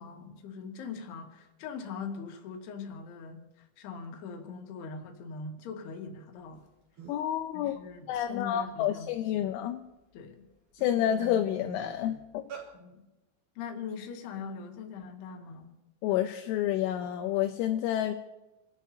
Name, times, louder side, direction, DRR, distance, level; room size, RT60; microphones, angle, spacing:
voice 1, 0.0-6.7 7.5-9.5 10.1-10.5 12.7-13.0 13.6-15.7, left 5 dB, 65° left, 3 dB, 3.4 m, -41 dB
sound 1, 6.6-6.7 7.0-7.4 7.8-9.4 10.0-10.1 10.5-12.7, right 8 dB, 40° right, 4.3 m, -47 dB
voice 2, 7.1-7.8 8.1-9.8 10.8-12.4 16.0-18.2, left 11 dB, 80° left, 5 dB, 3.1 m, -29 dB
29.0 x 13.0 x 2.8 m, 1.0 s
omnidirectional pair, 5.7 m